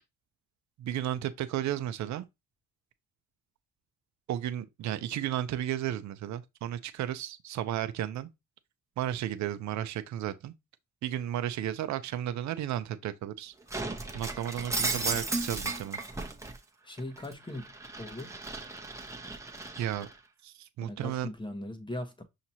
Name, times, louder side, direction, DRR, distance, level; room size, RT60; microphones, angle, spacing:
voice 1, 0.8-2.2 4.3-8.3 9.0-10.5 11.0-13.5 14.1-16.0 19.7-20.1 20.4-21.3, right 11 dB, 70° right, 0.6 m, -33 dB
Shatter, 13.7-16.6 17.0-20.1, right 3 dB, 10° right, 0.9 m, -35 dB
voice 2, 16.8-18.4 20.8-22.2, left 1 dB, 15° left, 1.1 m, -40 dB
5.8 x 2.9 x 2.8 m
cardioid pair, 90°, 30 cm